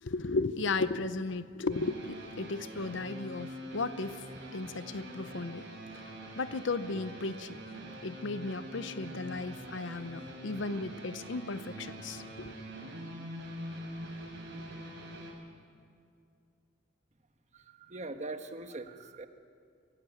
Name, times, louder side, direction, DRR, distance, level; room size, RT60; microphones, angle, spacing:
voice 1, 0.0-4.2 4.5-5.6 6.3-7.6 8.0-12.5, left 3 dB, 70° left, 13 dB, 0.7 m, -35 dB
sound 1, 1.7-15.3, right 1 dB, 65° right, 5.4 m, -44 dB
voice 2, 17.9-19.3, right 2 dB, 40° right, 7 dB, 1.3 m, -41 dB
24.0 x 15.0 x 8.5 m, 2.3 s
head